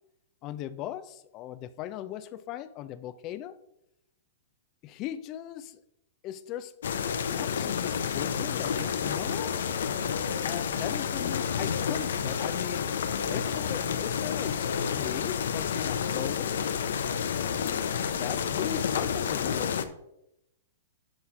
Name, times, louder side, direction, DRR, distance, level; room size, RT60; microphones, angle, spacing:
voice 1, 0.4-3.6 4.8-5.8 6.2-6.8 7.3-9.6 10.4-12.9 13.3-16.7 17.4-20.0, left 12 dB, 35° left, 14 dB, 0.6 m, -39 dB
sound 1, 6.8-19.9, left 7 dB, 75° left, 0.7 m, -30 dB
10.5 x 4.1 x 4.9 m, 0.82 s
hypercardioid pair, 130°, 0 cm